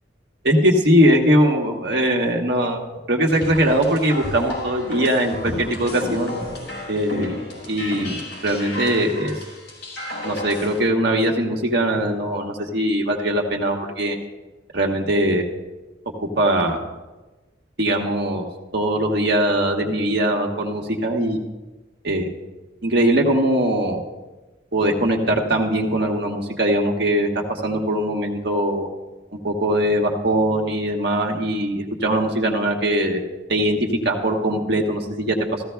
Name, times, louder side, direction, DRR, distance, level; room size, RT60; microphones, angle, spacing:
voice 1, 0.4-2.8 3.1-6.3 6.9-7.3 7.7-9.3 10.2-14.2 14.7-15.4 16.2-16.8 17.8-18.4 18.7-21.4 22.0-22.3 22.8-24.0 24.7-28.9 29.4-33.8 34.0-35.6, right 1 dB, 60° right, 0 dB, 1.5 m, -21 dB
sound 1, 3.3-10.8, left 1 dB, 70° left, 4.5 m, -32 dB
15.5 x 15.0 x 2.3 m, 1.1 s
head